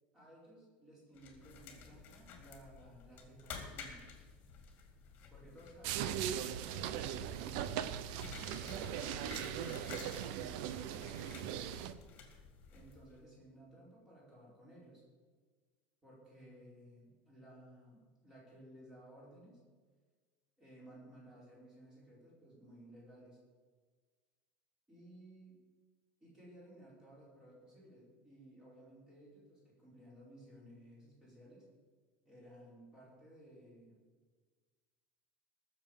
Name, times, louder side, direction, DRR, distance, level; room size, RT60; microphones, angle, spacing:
voice 1, 0.1-4.1 5.3-7.8 12.7-15.0 16.0-19.6 20.6-23.4 24.9-25.5 26.2-31.6 32.2-34.0, right 1 dB, 10° right, -6 dB, 4.8 m, -58 dB
sound 1, 1.2-13.2, left 5 dB, 35° left, 2.2 m, -52 dB
sound 2, 5.8-11.9, right 10 dB, 55° right, 0.7 m, -39 dB
19.5 x 7.1 x 5.5 m, 1.4 s
cardioid pair, 170°, 5 cm